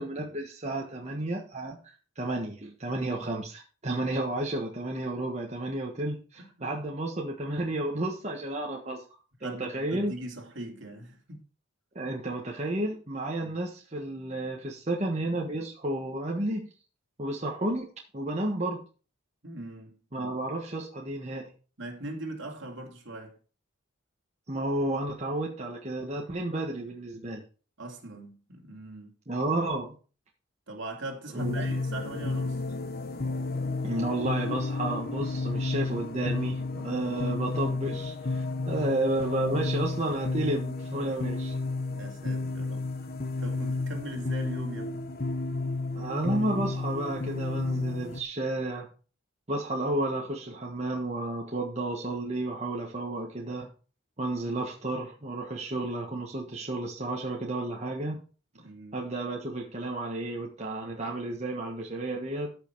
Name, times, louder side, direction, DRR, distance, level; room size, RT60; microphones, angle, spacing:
voice 1, 0.0-9.0 9.4-10.1 11.9-16.7 17.2-18.8 20.1-21.5 24.5-27.4 29.3-29.9 31.3-31.6 33.8-41.6 45.9-48.9 49.5-53.7 54.2-58.2 58.9-62.5, right 1 dB, 30° right, 1.4 m, -32 dB
voice 2, 6.4-6.8 9.4-11.5 13.4-13.6 19.4-20.3 21.8-23.4 27.8-29.1 30.7-32.6 38.7-38.9 41.9-43.1 43.4-45.0 58.5-59.0, right 2 dB, 60° right, 2.7 m, -41 dB
sound 1, 31.4-48.2, left 3 dB, 45° left, 0.9 m, -32 dB
14.0 x 5.4 x 4.7 m
head